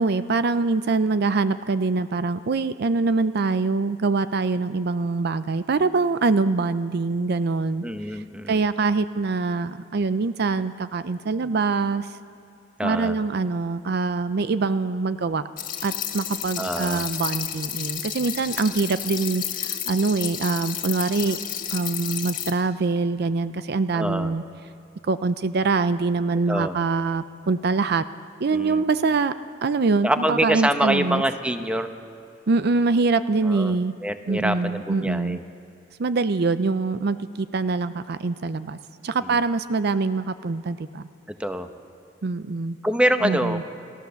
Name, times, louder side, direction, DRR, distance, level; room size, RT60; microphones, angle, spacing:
voice 1, 0.0-12.2 12.8-15.4 15.8-21.4 21.7-24.4 25.1-28.0 28.4-29.3 29.6-31.2 32.5-33.9 34.3-35.4 36.0-38.8 39.0-41.1 42.2-42.8 43.2-43.6, right 3 dB, 60° right, 13 dB, 0.5 m, -24 dB
voice 2, 7.8-8.6 12.8-13.2 16.6-17.1 23.9-24.3 26.5-26.8 28.5-28.8 30.0-31.9 33.4-33.8 34.0-35.4 39.2-39.3 41.4-41.7 42.8-43.6, equal, 5° right, 8 dB, 0.9 m, -25 dB
sound 1, 15.6-22.5, left 10 dB, 50° left, 1.7 m, -31 dB
29.5 x 14.0 x 7.0 m, 2.6 s
head